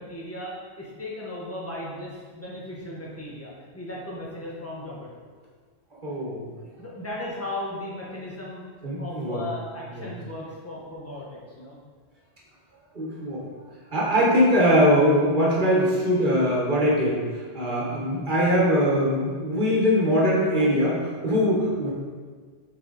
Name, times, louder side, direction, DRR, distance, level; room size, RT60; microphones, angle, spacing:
voice 1, 0.0-5.1 6.8-8.6 9.0-11.7, left 1 dB, 10° left, -5 dB, 1.2 m, -36 dB
voice 2, 6.0-6.5 8.8-9.4 9.9-10.1 12.9-13.4 13.9-17.2 17.5-21.9, equal, 40° right, -4 dB, 1.6 m, -22 dB
6.3 x 4.8 x 4.0 m, 1.5 s
omnidirectional pair, 1.3 m